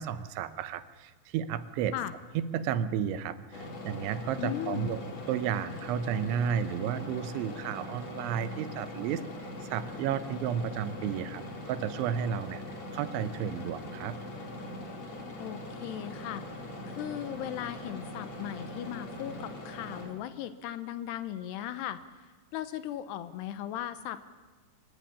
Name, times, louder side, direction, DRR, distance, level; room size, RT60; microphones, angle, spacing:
voice 1, 0.0-2.0 2.3-5.0 5.3-9.3 9.6-14.2, right 8 dB, 85° right, 13 dB, 3.4 m, -32 dB
sound 1, 3.5-20.1, left 1 dB, 40° left, 3.7 m, -42 dB
voice 2, 4.4-4.9 15.4-22.0 22.5-24.2, left 11 dB, 75° left, 12 dB, 2.8 m, -37 dB
25.0 x 16.0 x 10.0 m, 1.3 s
omnidirectional pair, 5.2 m